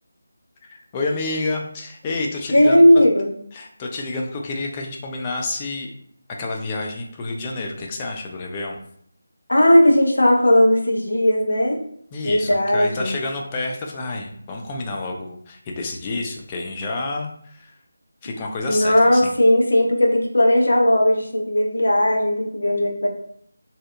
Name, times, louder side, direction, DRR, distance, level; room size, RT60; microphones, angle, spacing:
voice 1, 0.9-3.0 3.5-5.9 6.4-8.8 12.1-17.7 18.2-19.3, left 2 dB, 20° left, 0 dB, 0.3 m, -29 dB
voice 2, 2.5-3.3 9.5-11.8 12.2-13.1 18.7-23.1, left 1 dB, 75° left, 1 dB, 0.6 m, -17 dB
2.7 x 2.0 x 2.4 m, 0.65 s
figure-of-eight pair, 160°, 0 cm